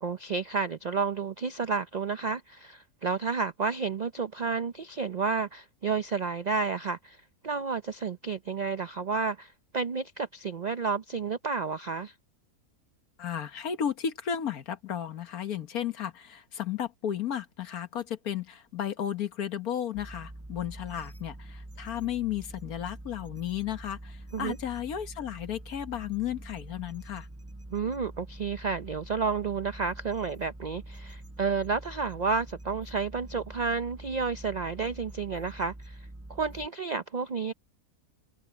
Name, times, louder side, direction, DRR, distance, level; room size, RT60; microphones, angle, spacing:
voice 1, 0.0-7.2 7.4-12.1 24.3-24.6 27.7-36.0 36.3-37.5, right 5 dB, 75° right, 0.4 m, -31 dB
voice 2, 13.2-27.3, left 9 dB, 75° left, 1.7 m, -34 dB
sound 1, 19.9-36.7, right 1 dB, 10° right, 0.8 m, -45 dB
omnidirectional pair, 1.6 m